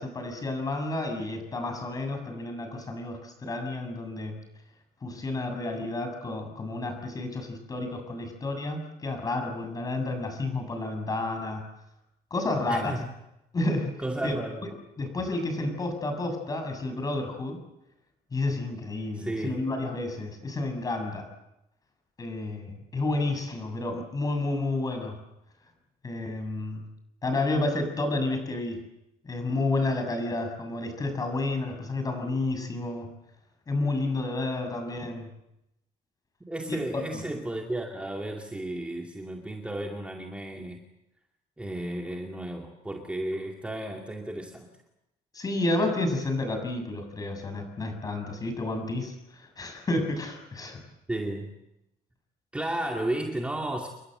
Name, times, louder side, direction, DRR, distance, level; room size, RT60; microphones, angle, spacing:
voice 1, 0.0-4.4 5.0-11.6 12.3-13.0 13.5-13.9 14.2-14.3 15.0-17.6 18.3-21.3 22.2-25.2 26.0-26.8 27.2-28.8 29.2-33.1 33.7-35.3 36.9-37.0 45.3-50.8, left 2 dB, 25° left, 6 dB, 7.3 m, -30 dB
voice 2, 12.7-13.1 14.0-14.7 15.2-15.3 19.1-19.6 36.4-40.8 41.6-44.7 51.1-51.5 52.5-53.9, right 1 dB, 5° right, 1 dB, 2.3 m, -33 dB
29.0 x 23.0 x 7.9 m, 0.88 s
cardioid pair, 165°, 16 cm